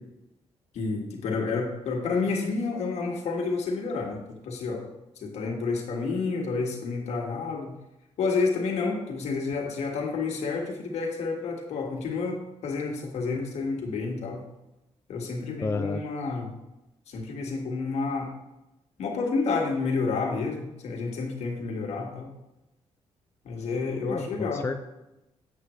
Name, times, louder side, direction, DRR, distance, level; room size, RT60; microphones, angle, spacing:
voice 1, 0.7-4.8 5.2-7.7 8.2-14.4 15.1-16.5 17.1-18.3 19.0-22.3 23.4-24.7, left 4 dB, 75° left, 1 dB, 1.7 m, -30 dB
voice 2, 15.6-16.0 24.1-24.8, left 3 dB, 25° left, 6 dB, 0.5 m, -31 dB
8.2 x 7.5 x 3.1 m, 0.94 s
cardioid pair, 95°, 11 cm